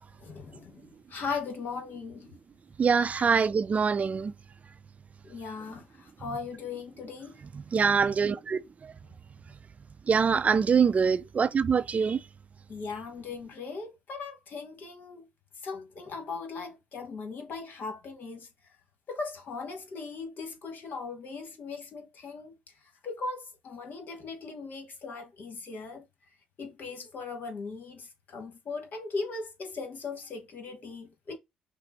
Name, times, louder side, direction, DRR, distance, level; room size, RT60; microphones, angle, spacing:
voice 1, 0.2-2.3 3.2-3.3 5.2-7.4 12.7-15.3 15.6-18.5 19.1-22.6 23.0-26.1 26.6-31.4, left 4 dB, 50° left, 1.4 m, -38 dB
voice 2, 2.8-4.3 7.5-8.6 10.1-12.2, right 6 dB, 35° right, 0.5 m, -24 dB
5.8 x 2.1 x 4.2 m
figure-of-eight pair, 45°, 4 cm